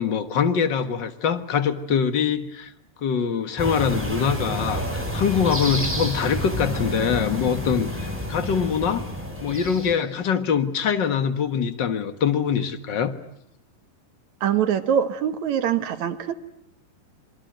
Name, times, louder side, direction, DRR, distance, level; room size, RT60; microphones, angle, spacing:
voice 1, 0.0-2.7 3.0-9.1 9.4-13.1, left 7 dB, 50° left, 10 dB, 1.4 m, -24 dB
sound 1, 3.6-9.9, equal, 5° right, 6.1 m, -29 dB
voice 2, 14.4-16.3, right 9 dB, 60° right, 11 dB, 2.4 m, -23 dB
27.0 x 23.0 x 9.1 m, 0.76 s
omnidirectional pair, 4.0 m